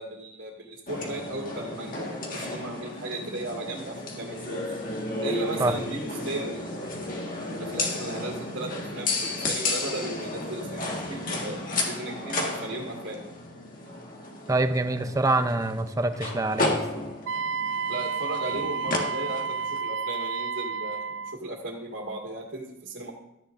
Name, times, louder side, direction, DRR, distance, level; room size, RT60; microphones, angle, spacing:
voice 1, 0.0-4.6 5.2-6.9 7.6-13.2 17.9-23.1, right 2 dB, 90° right, -2 dB, 2.0 m, -36 dB
sound 1, 0.9-19.8, left 2 dB, 45° left, 1.6 m, -33 dB
voice 2, 14.5-16.8, right 2 dB, 20° right, 9 dB, 0.6 m, -25 dB
Wind instrument woodwind instrument, 17.3-21.4, right 5 dB, 70° right, 0.3 m, -31 dB
13.5 x 9.9 x 2.6 m, 0.90 s
head